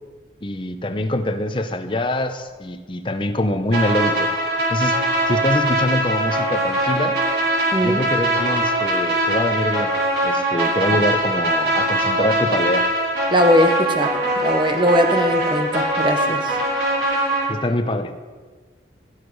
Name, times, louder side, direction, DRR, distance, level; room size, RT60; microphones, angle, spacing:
voice 1, 0.4-4.3 4.7-5.0 5.3-7.2 7.8-9.9 10.2-12.9 17.5-18.2, left 1 dB, 25° left, 8 dB, 0.7 m, -24 dB
sound 1, 3.7-17.4, right 1 dB, 70° right, 4.6 m, -21 dB
voice 2, 7.7-8.0 13.3-16.6, equal, 25° right, 6 dB, 1.0 m, -20 dB
17.0 x 8.3 x 4.7 m, 1.4 s
head